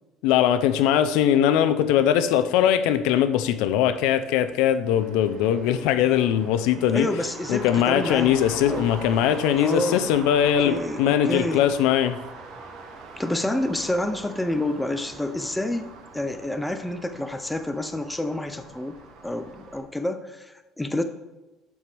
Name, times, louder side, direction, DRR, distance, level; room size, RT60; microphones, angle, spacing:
voice 1, 0.2-7.1 7.5-12.2, left 10 dB, 75° left, 11 dB, 0.5 m, -21 dB
Traffic noise roadway noise, 4.9-19.8, right 4 dB, 50° right, 1.1 m, -42 dB
voice 2, 6.7-8.9 9.6-10.1 10.6-11.6 13.2-15.9 16.1-19.0 19.2-21.0, left 1 dB, 5° left, 7 dB, 0.4 m, -28 dB
12.5 x 4.6 x 3.4 m, 1.1 s
cardioid pair, 180°, 0 cm